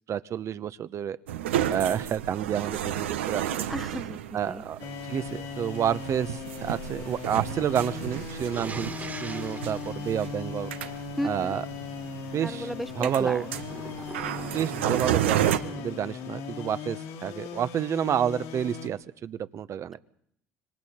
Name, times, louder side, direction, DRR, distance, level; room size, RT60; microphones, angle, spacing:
voice 1, 0.1-1.2 1.7-3.5 4.3-4.8 5.1-9.0 9.2-10.7 11.2-11.7 12.3-12.7 13.0-13.5 14.5-20.0, right 9 dB, 50° right, 14 dB, 0.9 m, -29 dB
sound 1, 1.3-15.6, right 11 dB, 90° right, 1.1 m, -32 dB
voice 2, 3.7-4.2 4.5-4.6 11.2-11.6 12.4-13.4, equal, ahead, 14 dB, 1.0 m, -34 dB
sound 2, 4.8-18.9, left 6 dB, 75° left, 2.9 m, -38 dB
sound 3, 8.5-11.2 13.6-15.1, right 4 dB, 25° right, 1.9 m, -42 dB
26.0 x 24.0 x 4.4 m, 0.69 s
hypercardioid pair, 65°, 6 cm